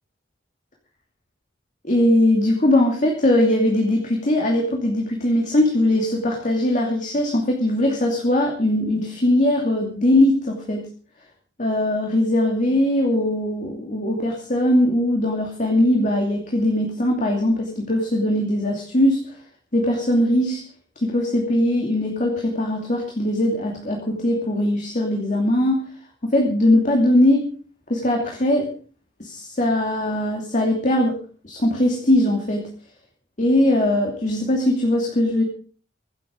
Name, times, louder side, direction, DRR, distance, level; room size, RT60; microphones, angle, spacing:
voice 1, 1.8-10.8 11.6-19.2 19.7-20.6 21.0-25.8 26.2-27.5 27.9-28.7 29.2-31.2 31.4-32.7 33.4-35.4, left 1 dB, 45° left, 1 dB, 2.7 m, -20 dB
24.5 x 8.4 x 5.2 m, 0.41 s
head